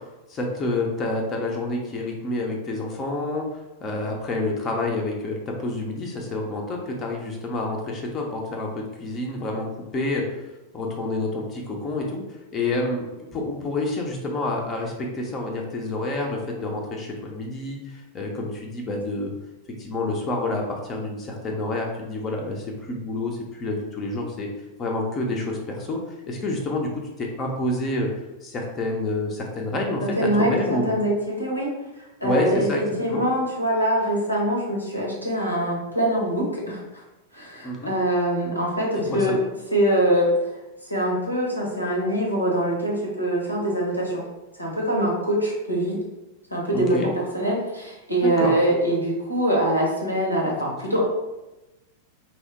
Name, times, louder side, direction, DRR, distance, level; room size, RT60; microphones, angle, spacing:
voice 1, 0.3-9.7 9.9-10.4 10.7-12.2 12.5-19.3 19.8-24.5 24.8-26.0 26.3-28.1 28.4-31.0 32.2-33.3 37.6-37.9 39.1-39.4 46.7-47.1 48.2-48.5 50.7-50.8, left 2 dB, 25° left, 0 dB, 0.5 m, -28 dB
voice 2, 30.2-31.7 32.2-36.8 37.3-39.4 39.7-40.5 40.9-44.2 44.6-46.0 46.5-51.0, right 1 dB, 90° left, -3 dB, 0.7 m, -23 dB
2.9 x 2.0 x 2.8 m, 1.0 s
figure-of-eight pair, 90°, 0 cm